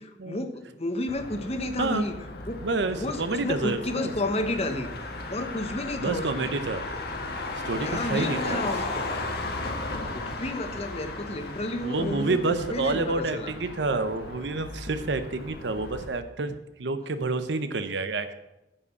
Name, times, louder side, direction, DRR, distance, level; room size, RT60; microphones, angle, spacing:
voice 1, 0.0-2.2 2.5-4.9 5.3-6.5 7.8-9.1 10.1-13.5, left 1 dB, 35° left, 7 dB, 1.0 m, -31 dB
Motor vehicle (road), 1.1-16.1, left 2 dB, 60° left, 1.4 m, -36 dB
voice 2, 2.6-4.1 6.0-6.8 7.6-8.6 9.6-9.7 11.8-18.3, right 3 dB, 75° right, 10 dB, 0.7 m, -29 dB
9.9 x 5.1 x 8.1 m, 0.92 s
head